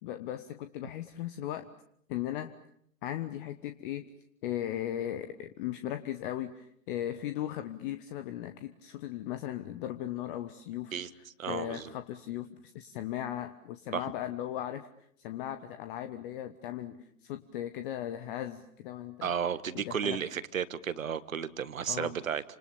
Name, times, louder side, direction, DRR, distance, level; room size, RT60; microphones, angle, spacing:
voice 1, 0.0-1.7 2.1-2.5 3.0-4.1 4.4-10.9 11.5-14.9 15.2-19.3 19.7-20.2 21.9-22.1, left 12 dB, 35° left, 10 dB, 1.3 m, -37 dB
voice 2, 11.4-11.9 13.9-14.0 19.2-22.4, right 7 dB, 65° right, 15 dB, 1.6 m, -33 dB
29.0 x 27.0 x 7.0 m, 0.68 s
figure-of-eight pair, 110°, 42 cm